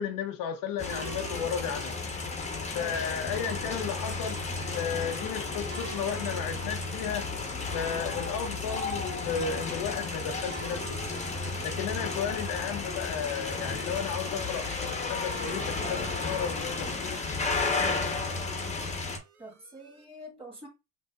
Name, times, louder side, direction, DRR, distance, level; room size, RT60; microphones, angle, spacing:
voice 1, 0.0-2.0 2.7-4.4 4.7-7.3 7.7-11.2 11.6-17.2, left 7 dB, 55° left, 0.7 m, -34 dB
sound 1, 0.8-19.2, left 3 dB, 15° left, 1.0 m, -33 dB
sound 2, 0.9-20.0, right 5 dB, 80° right, 0.9 m, -50 dB
voice 2, 19.4-20.7, right 1 dB, 15° right, 1.9 m, -45 dB
5.4 x 2.7 x 2.4 m
hypercardioid pair, 85°, 42 cm